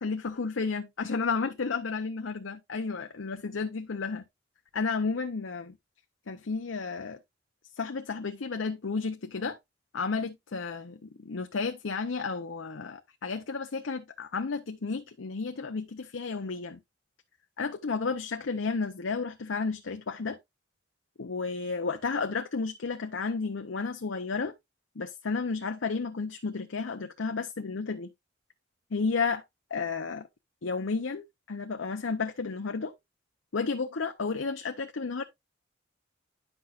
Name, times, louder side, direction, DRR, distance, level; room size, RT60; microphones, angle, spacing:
voice 1, 0.0-4.2 4.7-5.7 6.3-7.2 7.8-9.6 9.9-16.8 17.6-20.4 21.2-24.5 25.0-28.1 28.9-29.4 29.7-30.3 30.6-32.9 33.5-35.2, left 4 dB, 90° left, 0.7 m, -32 dB
10.0 x 6.0 x 2.5 m
head